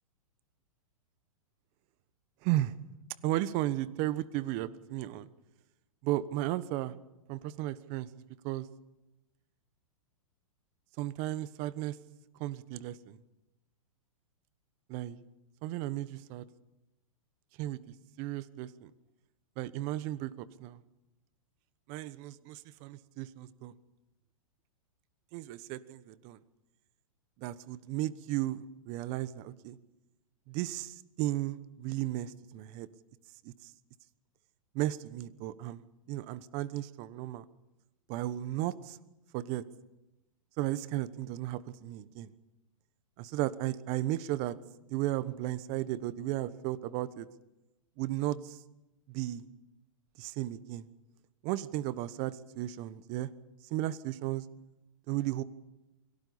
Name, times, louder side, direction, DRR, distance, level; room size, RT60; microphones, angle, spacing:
voice 1, 2.4-2.7 3.2-5.3 6.0-6.9 7.3-8.1 8.4-8.7 11.0-11.9 12.4-13.2 14.9-15.2 15.6-16.4 17.6-17.8 18.2-18.9 19.6-20.8 21.9-23.7 25.3-26.4 27.4-29.8 30.5-32.9 34.7-35.8 36.1-37.4 38.1-39.0 39.3-39.6 40.6-42.3 43.2-44.5 44.9-47.3 48.0-48.6 49.1-49.4 50.2-50.8 51.4-53.3 53.7-54.4 55.1-55.4, right 15 dB, 40° right, 16 dB, 1.2 m, -34 dB
23.0 x 17.5 x 8.6 m, 0.98 s
hypercardioid pair, 130°, 18 cm